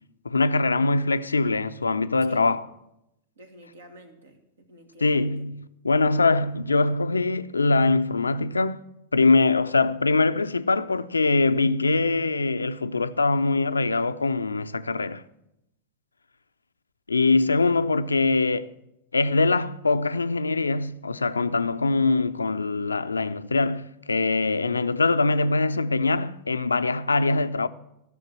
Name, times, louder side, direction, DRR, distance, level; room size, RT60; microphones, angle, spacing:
voice 1, 0.2-2.6 5.0-8.8 9.1-15.2 17.1-18.7 19.1-27.7, left 3 dB, 80° left, 0.5 m, -23 dB
voice 2, 3.4-5.4, right 1 dB, 70° right, 1.7 m, -49 dB
13.0 x 6.6 x 7.7 m
figure-of-eight pair, 90°, 0 cm